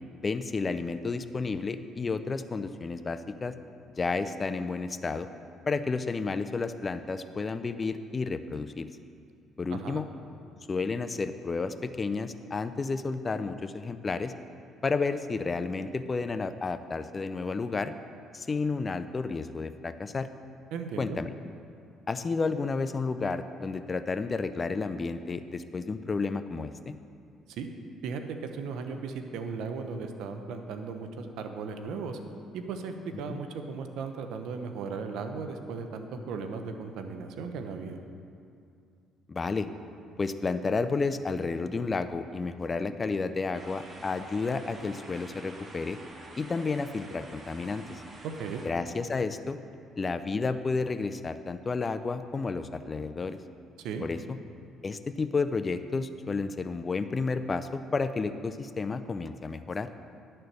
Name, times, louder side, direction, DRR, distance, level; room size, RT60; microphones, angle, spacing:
voice 1, 0.2-3.5 4.0-5.3 5.7-8.9 9.6-10.0 10.7-14.3 14.8-17.9 18.3-20.3 21.0-21.3 22.1-26.9 33.3-33.4 39.3-39.7 40.2-46.0 46.4-48.0 48.6-49.6 50.0-53.4 54.0-54.2 54.8-59.9, left 4 dB, 30° left, 11 dB, 0.4 m, -31 dB
voice 2, 9.7-10.0 20.7-21.2 27.5-27.7 28.0-32.2 32.5-38.0 48.2-48.6 53.8-54.1, right 5 dB, 75° right, 6 dB, 0.7 m, -36 dB
sound 1, 43.5-48.7, right 2 dB, 35° right, 1.3 m, -48 dB
10.5 x 4.4 x 6.6 m, 2.4 s
supercardioid pair, 80°, 0 cm